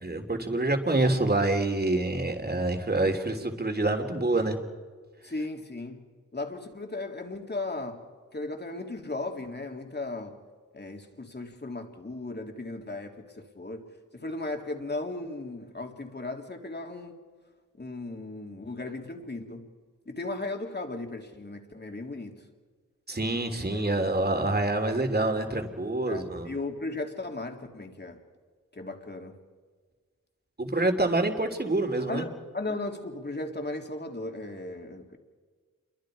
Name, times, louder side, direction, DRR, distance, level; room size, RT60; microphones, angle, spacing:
voice 1, 0.0-4.6 23.1-26.5 30.6-32.2, right 2 dB, 30° right, 5 dB, 3.5 m, -26 dB
voice 2, 5.2-6.1 6.3-8.1 8.3-10.4 10.7-13.8 14.1-17.2 17.8-19.7 20.0-22.4 23.3-24.1 26.1-28.2 28.7-29.4 32.1-35.2, left 2 dB, 35° left, 3 dB, 3.3 m, -36 dB
29.0 x 23.5 x 5.1 m, 1.5 s
cardioid pair, 70°, 32 cm